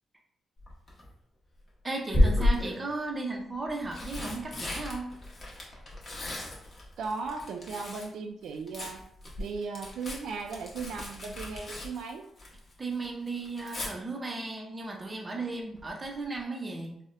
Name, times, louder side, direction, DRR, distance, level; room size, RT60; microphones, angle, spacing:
Tearing, 0.6-1.1 2.1-2.8 3.6-8.1 8.4-12.7 13.0-13.9 15.8-16.0 16.3-16.4, left 1 dB, 35° left, 0.8 m, -32 dB
voice 1, 1.8-5.1 12.8-17.0, right 3 dB, 20° right, 1 dB, 0.5 m, -35 dB
voice 2, 7.0-9.0 9.4-12.2, right 4 dB, 80° right, 4 dB, 0.3 m, -37 dB
4.0 x 2.1 x 2.4 m, 0.71 s
cardioid pair, 150°, 0 cm